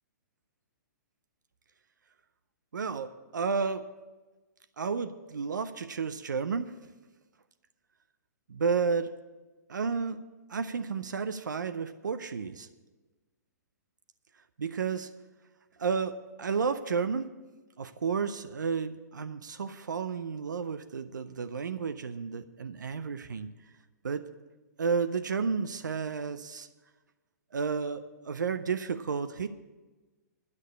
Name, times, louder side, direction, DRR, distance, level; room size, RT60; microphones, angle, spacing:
voice 1, 2.7-3.9 4.8-6.7 8.5-9.1 9.7-10.2 10.5-12.7 14.6-15.1 15.8-17.3 17.8-23.5 24.0-24.2 24.8-26.7 27.5-29.5, right 5 dB, 85° right, 11 dB, 0.6 m, -32 dB
9.8 x 6.5 x 8.8 m, 1.2 s
hypercardioid pair, 135°, 10 cm